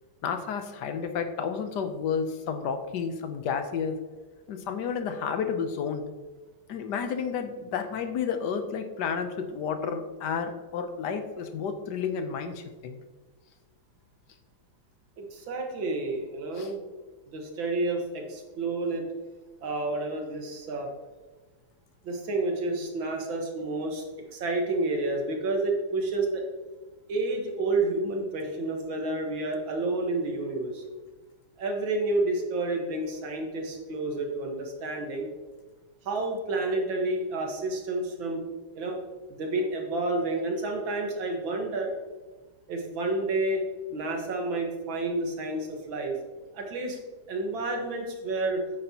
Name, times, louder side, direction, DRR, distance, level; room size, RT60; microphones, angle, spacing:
voice 1, 0.2-4.0 4.5-6.0 6.7-13.0 16.6-16.7, left 6 dB, 65° left, 8 dB, 1.2 m, -31 dB
voice 2, 15.2-16.8 17.3-19.0 19.6-20.9 22.0-24.0 24.3-26.4 27.1-30.8 31.6-35.3 36.1-38.4 38.7-39.0 39.3-41.9 42.7-43.6 43.9-46.1 46.5-47.0 47.3-48.6, right 2 dB, 65° right, 2 dB, 2.2 m, -30 dB
9.2 x 8.9 x 2.9 m, 1.3 s
omnidirectional pair, 2.3 m